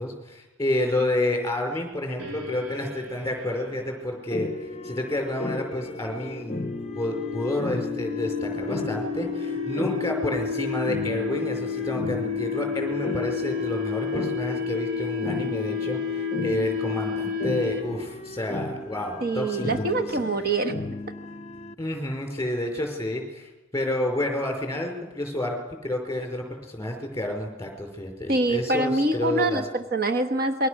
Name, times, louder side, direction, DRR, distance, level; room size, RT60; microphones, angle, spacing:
voice 1, 0.0-20.3 21.8-29.7, left 1 dB, 15° left, 3 dB, 5.0 m, -30 dB
sound 1, 2.2-18.1, left 6 dB, 75° right, 3.2 m, -32 dB
sound 2, 4.3-21.7, left 2 dB, 30° left, 0.8 m, -35 dB
voice 2, 19.2-20.7 28.3-30.7, right 2 dB, 45° right, 7 dB, 1.2 m, -25 dB
28.0 x 22.5 x 6.5 m, 1.1 s
head